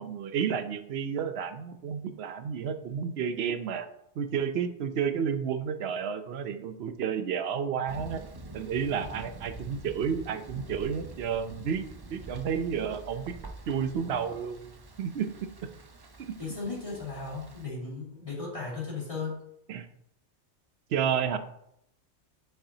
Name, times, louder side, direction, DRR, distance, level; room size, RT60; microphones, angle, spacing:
voice 1, 0.0-3.9 4.2-8.2 8.5-11.8 12.1-13.4 13.7-14.7 15.0-15.3 16.3-16.4 19.7-19.9 20.9-21.4, right 7 dB, 65° right, 10 dB, 0.8 m, -31 dB
Thunder, 7.9-17.7, right 2 dB, 30° right, 0.4 m, -46 dB
voice 2, 16.4-19.4, left 4 dB, 30° left, -8 dB, 2.5 m, -36 dB
6.8 x 5.7 x 2.8 m, 0.74 s
omnidirectional pair, 1.2 m